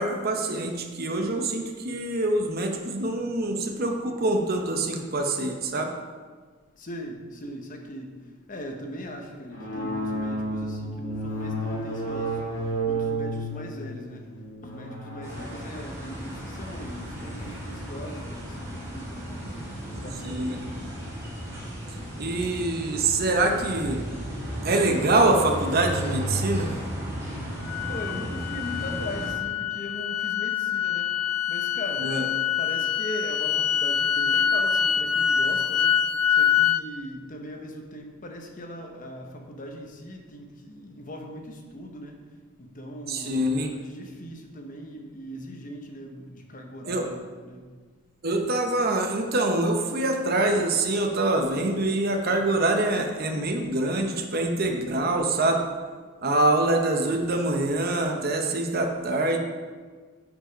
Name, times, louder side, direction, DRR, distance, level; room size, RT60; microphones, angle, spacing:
voice 1, 0.0-5.9 20.2-20.6 22.2-24.0 24.6-26.7 32.0-32.2 43.1-43.7 46.9-47.0 48.2-55.6 56.2-59.4, right 2 dB, 45° right, 4 dB, 0.8 m, -25 dB
voice 2, 6.8-8.1 8.5-12.4 12.8-14.3 14.6-19.5 20.0-20.9 27.9-31.1 31.5-32.1 32.6-36.0 36.3-42.2 42.6-47.6, equal, 40° left, 3 dB, 0.9 m, -39 dB
sound 1, 9.5-17.6, right 1 dB, 65° left, 2.3 m, -32 dB
sound 2, 15.2-29.3, equal, 15° right, 2.2 m, -35 dB
sound 3, 27.7-36.8, left 8 dB, 85° left, 0.4 m, -25 dB
8.3 x 5.1 x 5.0 m, 1.5 s
head